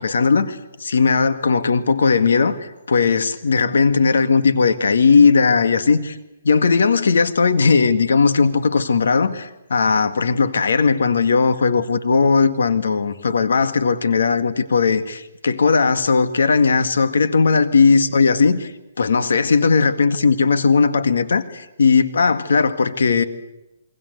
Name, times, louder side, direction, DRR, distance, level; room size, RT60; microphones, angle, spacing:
voice 1, 0.0-6.2 6.4-18.7 19.0-23.2, left 5 dB, 85° left, 10 dB, 1.9 m, -17 dB
28.5 x 23.5 x 8.1 m, 0.93 s
hypercardioid pair, 170°, 0 cm